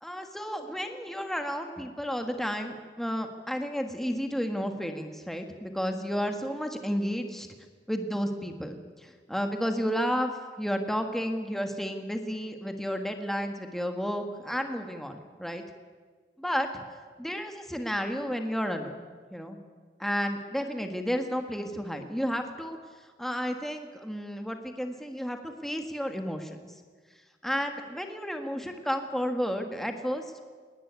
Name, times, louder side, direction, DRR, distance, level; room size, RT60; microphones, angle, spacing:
voice 1, 0.0-7.5 7.9-15.6 16.4-16.8 17.2-19.0 19.3-19.6 20.0-22.8 23.2-26.7 27.4-30.2, equal, ahead, 5 dB, 1.5 m, -32 dB
20.0 x 19.0 x 9.5 m, 1.5 s
head